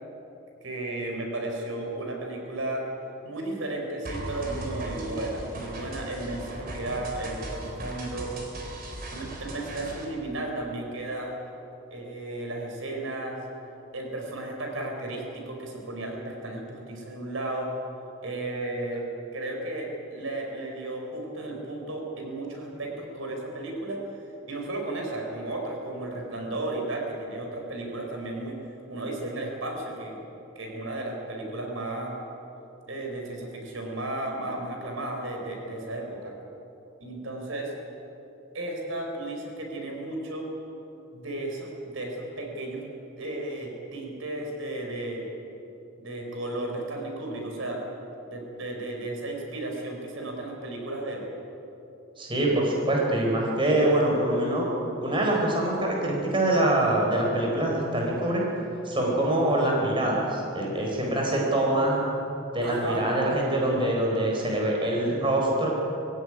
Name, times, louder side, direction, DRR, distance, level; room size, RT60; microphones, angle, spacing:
voice 1, 0.6-2.8 3.2-8.3 9.1-11.3 11.9-13.4 13.9-17.7 18.2-19.0 19.3-24.0 24.5-28.6 28.9-30.2 30.5-32.1 32.9-36.3 37.0-37.7 38.5-40.5 41.1-42.8 43.2-45.2 46.0-47.8 48.3-51.2 62.6-63.1, right 2 dB, 70° right, 1 dB, 4.9 m, -34 dB
sound 1, 4.0-10.0, right 1 dB, 45° right, 4.1 m, -38 dB
voice 2, 52.2-54.7 55.0-58.4 58.8-62.1 62.5-65.7, right 1 dB, 25° right, -2 dB, 4.5 m, -24 dB
22.0 x 16.5 x 9.9 m, 2.9 s
head